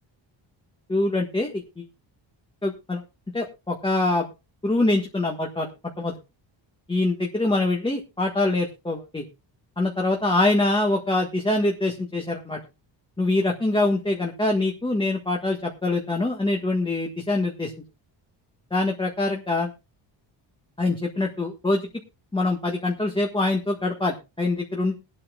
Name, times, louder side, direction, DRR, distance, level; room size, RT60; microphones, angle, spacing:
voice 1, 0.9-1.8 2.6-3.0 3.3-4.3 4.6-5.7 6.0-6.1 6.9-9.2 9.8-12.6 13.2-17.7 18.7-19.7 20.8-21.9 22.3-25.0, left 2 dB, 10° left, 1 dB, 1.5 m, -24 dB
21.5 x 8.7 x 2.3 m, 0.29 s
cardioid pair, 125°, 46 cm